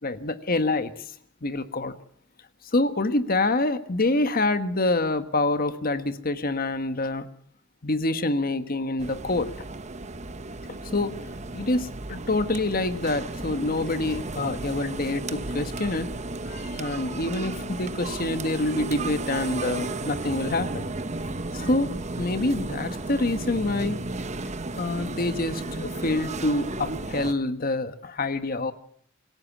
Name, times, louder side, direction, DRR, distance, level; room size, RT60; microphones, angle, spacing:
voice 1, 0.0-1.1 1.4-1.9 2.6-7.3 7.8-9.7 10.9-11.2 11.5-16.1 16.4-20.9 21.5-24.0 24.7-28.7, left 2 dB, 45° left, 11 dB, 1.4 m, -26 dB
sound 1, 9.0-27.3, right 2 dB, 35° right, 1.1 m, -34 dB
25.5 x 17.0 x 7.2 m, 0.63 s
head